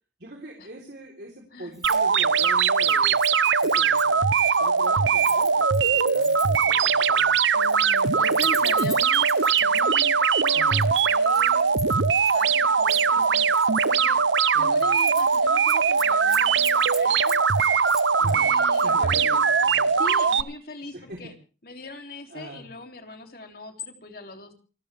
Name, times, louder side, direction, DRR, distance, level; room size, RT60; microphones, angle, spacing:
voice 1, 0.2-3.2 3.6-4.2 4.6-7.4 8.2-8.7 9.6-9.9 10.5-10.8 13.1-13.3 14.5-14.9 18.2-18.5 18.8-19.9 20.9-21.3 22.3-22.7, right 1 dB, 65° right, 0 dB, 3.9 m, -42 dB
Keys jangling, 1.7-2.0 2.3-6.8 7.5-9.8 10.5-12.4 12.9-13.9 14.3-14.5 14.8-15.4 15.7-18.4 18.7-18.9, right 1 dB, 5° right, 1.3 m, -41 dB
sound 1, 1.8-20.4, right 5 dB, 80° right, 0.8 m, -21 dB
voice 2, 7.5-11.8 12.3-13.5 13.8-14.2 14.5-17.4 18.3-19.4 19.9-21.3 21.6-24.5, left 2 dB, 55° left, 5 dB, 3.2 m, -40 dB
28.5 x 13.5 x 3.5 m, 0.37 s
head